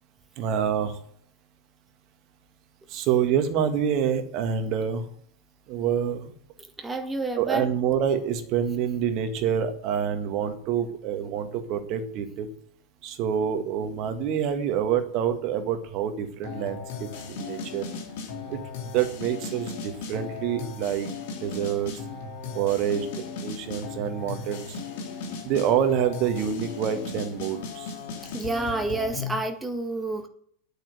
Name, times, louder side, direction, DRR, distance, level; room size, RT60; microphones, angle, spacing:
voice 1, 0.4-1.0 2.9-5.1 5.7-6.3 7.4-12.5 13.0-17.8 18.5-18.6 18.9-21.1 21.4-21.9 22.5-24.8 25.4-27.9, right 8 dB, 40° right, 8 dB, 1.9 m, -27 dB
voice 2, 6.8-7.7 28.3-30.3, right 2 dB, 10° right, 5 dB, 1.6 m, -29 dB
sound 1, 16.4-29.4, left 4 dB, 50° left, 3.0 m, -36 dB
9.2 x 9.2 x 7.8 m, 0.63 s
figure-of-eight pair, 90°, 0 cm